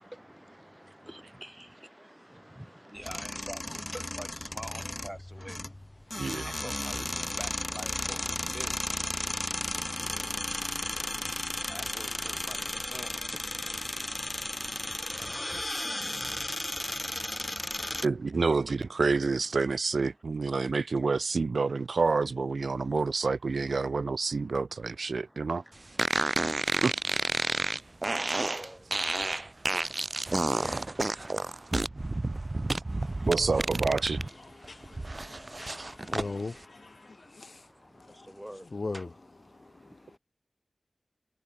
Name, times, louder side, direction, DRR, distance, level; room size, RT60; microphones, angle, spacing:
voice 1, 0.0-5.6 6.4-8.2 8.5-8.7 11.7-13.1 18.3-18.7 28.5-28.9 38.3-38.7 38.9-39.1, equal, 10° right, 3.2 m, -45 dB
sound 1, 3.0-18.1, left 1 dB, 20° left, 0.8 m, -34 dB
voice 2, 18.0-25.6 26.8-26.9 33.3-34.2, right 4 dB, 80° right, 0.6 m, -28 dB
sound 2, 26.0-34.3 34.6-36.3, right 2 dB, 35° right, 0.8 m, -30 dB
voice 3, 33.0-33.3 34.6-37.6 37.9-38.3 38.7-39.1, left 3 dB, 60° left, 0.3 m, -40 dB
wide cardioid pair, 85°, 0 cm